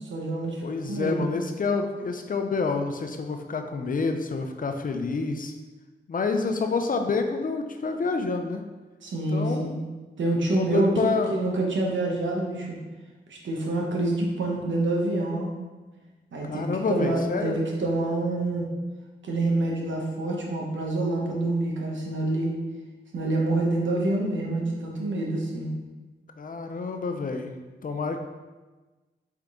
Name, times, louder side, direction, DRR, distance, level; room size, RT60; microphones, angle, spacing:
voice 1, 0.1-0.6 0.9-1.3 9.0-9.8 10.2-12.8 13.3-15.5 16.3-18.7 19.2-22.5 23.1-25.7, right 2 dB, 80° right, -1 dB, 0.9 m, -27 dB
voice 2, 0.6-5.5 6.1-8.6 9.3-9.8 10.5-11.3 16.4-17.6 26.4-27.5 27.8-28.2, left 4 dB, 45° left, 6 dB, 0.5 m, -28 dB
3.7 x 3.6 x 3.6 m, 1.2 s
cardioid pair, 55°, 19 cm